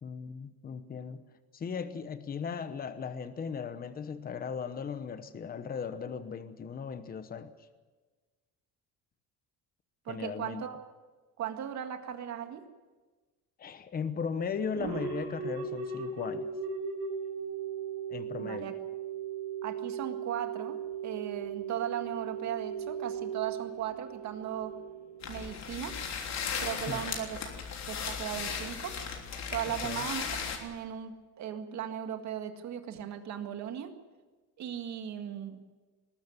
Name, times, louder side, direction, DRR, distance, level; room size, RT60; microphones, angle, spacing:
voice 1, 0.0-1.2 1.5-7.5 10.1-10.6 13.6-16.5 18.1-18.7 26.9-27.0 29.8-30.1, left 6 dB, 25° left, 11 dB, 1.0 m, -37 dB
voice 2, 10.1-10.8 11.4-12.6 18.4-18.8 19.6-24.8 25.3-26.0 26.6-27.5 27.9-29.0 29.5-30.2 30.6-33.9 34.6-35.6, right 10 dB, 50° right, 6 dB, 2.0 m, -37 dB
sound 1, 14.8-25.4, right 6 dB, 85° right, 3.6 m, -37 dB
sound 2, 25.2-30.6, left 6 dB, 50° left, 3.4 m, -36 dB
20.5 x 13.0 x 9.8 m, 1.3 s
cardioid pair, 150°, 35 cm